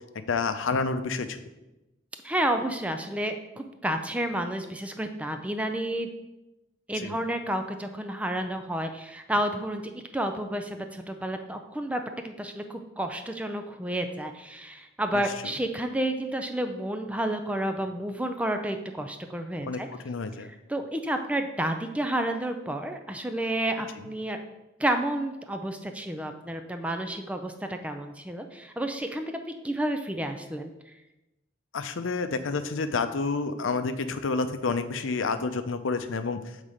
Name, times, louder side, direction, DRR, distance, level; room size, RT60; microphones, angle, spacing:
voice 1, 0.3-1.4 7.0-7.2 15.1-15.2 19.7-19.8 20.0-20.5 31.7-36.4, left 4 dB, 85° left, 9 dB, 0.6 m, -29 dB
voice 2, 2.2-6.1 6.9-9.8 10.1-19.9 20.4-24.4 24.8-30.7, right 1 dB, 5° right, 6 dB, 0.4 m, -30 dB
7.4 x 4.0 x 4.9 m, 0.99 s
head